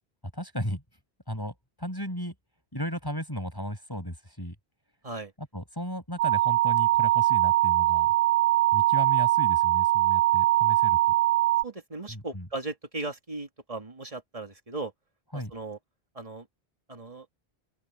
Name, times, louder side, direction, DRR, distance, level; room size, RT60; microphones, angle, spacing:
voice 1, 0.3-0.8 1.3-2.3 2.7-4.6 5.4-8.1 8.7-11.0 12.1-12.5 15.3-15.5, equal, 20° left, 7.2 m, -35 dB
sound 1, 6.2-11.6, right 16 dB, 70° right, 0.8 m, -22 dB
voice 2, 11.6-14.9 15.3-15.8 16.2-16.5 16.9-17.3, right 3 dB, 35° right, 2.4 m, -37 dB
open air
omnidirectional pair, 1.1 m